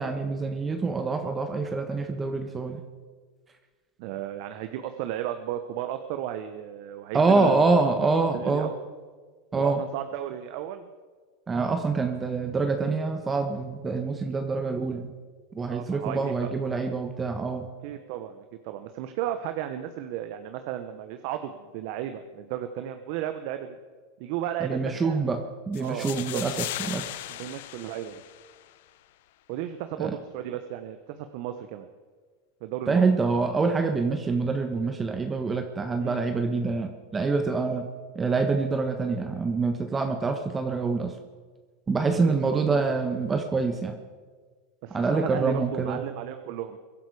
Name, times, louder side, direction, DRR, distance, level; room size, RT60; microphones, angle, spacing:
voice 1, 0.0-2.8 7.1-8.7 9.5-9.8 11.5-15.1 15.5-17.7 24.6-27.2 30.0-30.2 32.9-37.9 38.1-41.1 41.9-43.9 44.9-46.0, right 4 dB, 20° right, 6 dB, 1.4 m, -26 dB
voice 2, 4.0-7.9 8.3-8.7 9.5-10.9 15.7-16.5 17.8-23.8 24.2-25.2 25.8-26.4 27.4-28.2 29.5-31.9 32.6-33.0 36.0-36.2 42.1-42.8 44.8-46.8, right 11 dB, 60° right, 8 dB, 1.0 m, -34 dB
sound 1, 25.7-28.8, left 15 dB, 70° left, 0.7 m, -37 dB
22.5 x 11.5 x 4.9 m, 1.5 s
hypercardioid pair, 105°, 0 cm